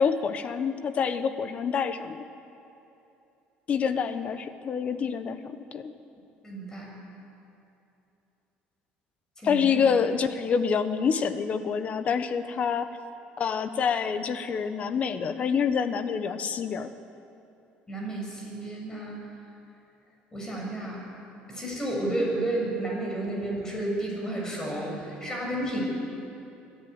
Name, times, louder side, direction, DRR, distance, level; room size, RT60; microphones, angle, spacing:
voice 1, 0.0-2.2 3.7-5.9 9.4-12.9 13.4-16.9, left 6 dB, 40° left, 11 dB, 1.1 m, -27 dB
voice 2, 6.4-6.9 9.4-9.9 17.9-19.2 20.3-21.0 21.5-25.8, right 1 dB, 15° left, -2 dB, 6.9 m, -31 dB
23.5 x 12.5 x 9.6 m, 2.8 s
cardioid pair, 130°, 4 cm